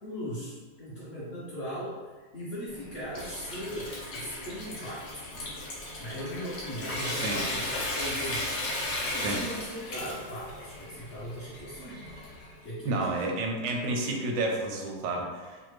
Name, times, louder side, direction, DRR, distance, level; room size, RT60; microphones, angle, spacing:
voice 1, 0.0-5.2 6.0-12.1 12.6-13.2, equal, 70° left, -10 dB, 0.6 m, -39 dB
Water tap faucet / Sink (filling or washing) / Trickle dribble, 2.7-12.6, left 1 dB, 50° left, 0.9 m, -36 dB
voice 2, 12.8-15.7, right 2 dB, 80° right, 1 dB, 1.3 m, -30 dB
3.3 x 2.1 x 3.1 m, 1.4 s
omnidirectional pair, 1.9 m